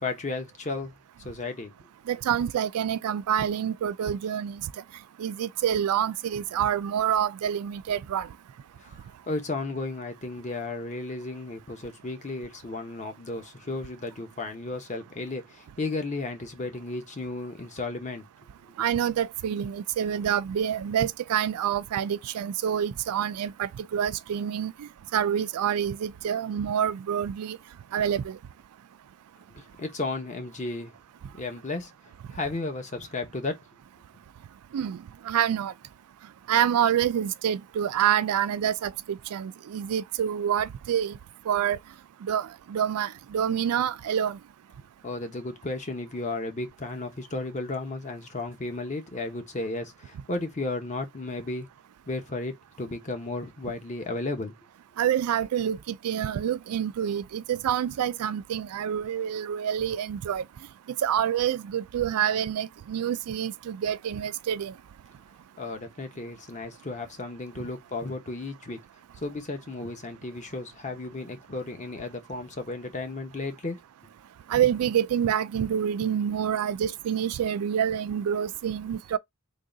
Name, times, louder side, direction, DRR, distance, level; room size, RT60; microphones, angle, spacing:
voice 1, 0.0-1.7 8.8-9.0 9.3-18.2 29.5-30.9 31.3-31.9 32.3-33.6 45.0-51.7 52.1-54.5 65.6-68.8 69.2-73.8, left 2 dB, 35° left, 0.8 m, -34 dB
voice 2, 2.1-4.7 5.2-8.3 18.8-27.6 27.9-28.4 34.7-35.0 35.2-35.7 36.5-41.2 41.5-41.8 42.2-44.4 55.0-60.4 60.9-64.7 74.5-79.2, right 9 dB, 85° right, 0.3 m, -27 dB
3.7 x 2.3 x 3.8 m
head